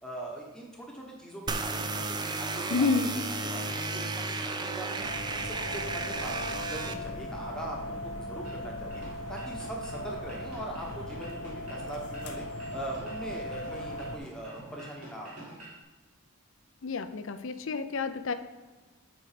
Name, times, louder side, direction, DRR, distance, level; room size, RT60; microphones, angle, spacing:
voice 1, 0.0-5.0 5.3-9.0 9.3-12.4 12.7-15.4, right 1 dB, 5° left, -2 dB, 1.2 m, -41 dB
sound 1, 1.5-6.9, right 3 dB, 20° right, 0.4 m, -33 dB
voice 2, 2.7-3.1 16.8-18.3, left 4 dB, 60° left, 10 dB, 0.6 m, -29 dB
sound 2, 5.0-14.2, left 1 dB, 85° left, 1.1 m, -38 dB
sound 3, 8.4-15.8, right 1 dB, 85° right, 2.6 m, -48 dB
8.6 x 4.7 x 5.0 m, 1.2 s
head